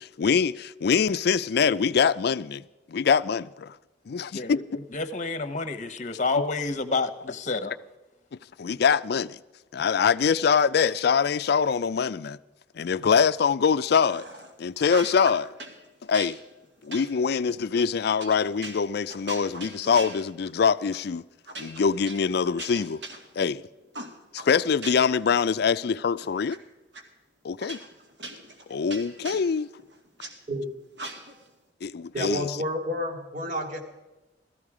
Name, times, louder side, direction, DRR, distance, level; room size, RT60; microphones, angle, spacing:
voice 1, 0.0-3.8 4.1-4.6 8.6-9.4 9.7-12.4 12.7-14.3 14.6-15.5 16.0-16.4 16.8-21.2 21.6-23.0 23.4-23.6 24.3-26.6 27.4-27.8 28.7-29.7 31.8-32.6, left 6 dB, 60° left, 0.4 m, -24 dB
voice 2, 4.3-7.8, left 3 dB, 45° left, 1.0 m, -29 dB
sound 1, 14.0-14.5 14.8-15.8 16.1-20.6 20.9-21.1 21.5-23.6 23.9-25.2 25.6-26.6 26.9-27.0 27.6-30.3 30.9-31.5, right 2 dB, 70° right, 2.2 m, -41 dB
voice 3, 32.1-33.8, equal, 50° right, 2.3 m, -30 dB
17.0 x 14.0 x 4.9 m
head